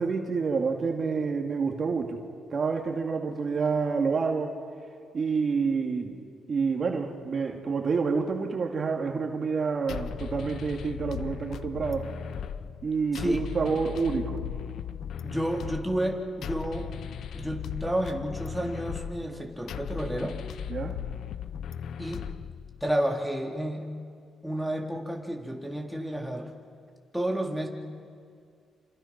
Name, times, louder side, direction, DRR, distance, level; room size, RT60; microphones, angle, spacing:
voice 1, 0.0-2.2 2.5-4.6 5.1-6.2 6.5-12.1 12.8-14.4 20.7-21.0, right 5 dB, 50° right, 3 dB, 2.5 m, -28 dB
sound 1, 9.9-22.9, left 8 dB, 70° left, 0.7 m, -37 dB
voice 2, 15.2-16.9 17.3-20.4 22.0-22.3 22.8-24.0 24.4-26.5 27.1-27.7, right 1 dB, ahead, 0 dB, 3.5 m, -31 dB
27.5 x 27.0 x 6.1 m, 2.3 s
supercardioid pair, 65°, 0 cm